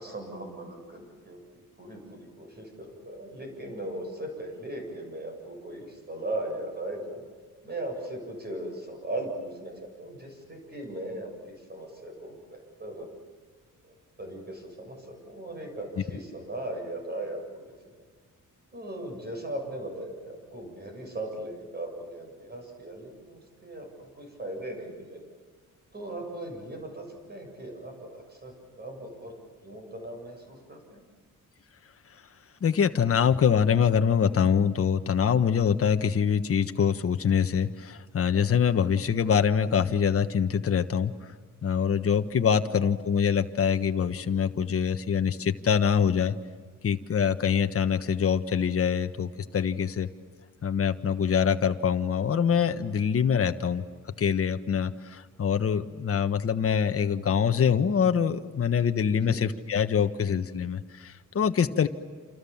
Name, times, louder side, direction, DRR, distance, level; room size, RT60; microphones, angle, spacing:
voice 1, 0.0-7.2 7.6-13.1 13.8-17.8 18.7-25.2 25.9-29.4 29.6-31.0 42.5-42.8 59.1-59.4, right 1 dB, 30° right, 2 dB, 7.7 m, -38 dB
voice 2, 32.6-41.1 41.6-46.4 46.8-50.1 50.6-53.8 54.2-61.9, left 7 dB, 45° left, 8 dB, 1.3 m, -24 dB
29.0 x 28.0 x 7.2 m, 1.5 s
wide cardioid pair, 150°, 32 cm